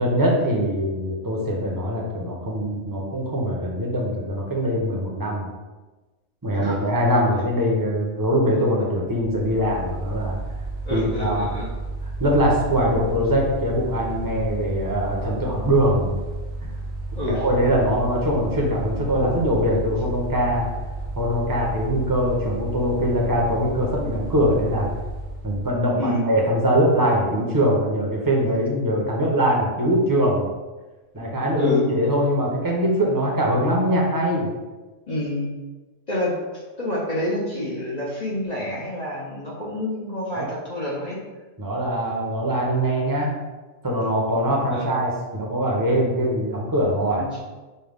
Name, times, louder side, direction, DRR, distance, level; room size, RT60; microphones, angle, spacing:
voice 1, 0.0-5.5 6.4-10.4 10.9-11.5 12.2-16.2 17.3-20.6 21.2-24.9 25.4-30.5 31.1-34.5 40.4-40.5 41.6-43.3 43.8-47.2, equal, 20° right, -3 dB, 0.7 m, -22 dB
Mechanical fan, 9.1-26.0, right 2 dB, 75° right, 1.0 m, -32 dB
voice 2, 10.8-11.7 17.2-17.4 26.0-26.3 31.6-31.8 35.1-35.5 36.1-41.2 44.7-44.9 47.2-47.4, left 1 dB, 40° left, -6 dB, 0.7 m, -28 dB
5.5 x 2.3 x 3.4 m, 1.2 s
omnidirectional pair, 1.2 m